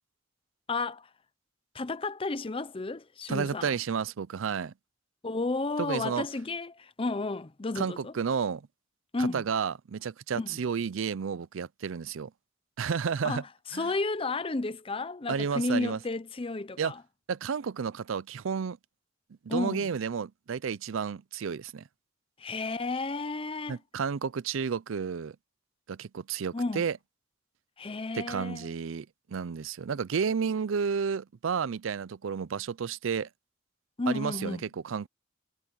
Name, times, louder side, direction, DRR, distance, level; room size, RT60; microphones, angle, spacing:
voice 1, 0.7-1.1 1.7-3.7 5.2-8.1 9.1-9.4 10.4-10.6 13.2-13.4 13.7-17.0 19.5-19.9 22.4-23.8 26.5-26.9 27.8-28.7 34.0-34.6, left 3 dB, 30° left, 0.6 m, -32 dB
voice 2, 3.3-4.7 5.8-6.3 7.8-8.6 9.2-12.3 12.8-13.4 13.7-13.9 15.3-16.0 16.8-16.9 17.3-18.8 19.4-21.8 23.7-25.4 25.9-27.0 28.1-33.3 34.1-35.1, right 6 dB, 75° right, 0.5 m, -31 dB
head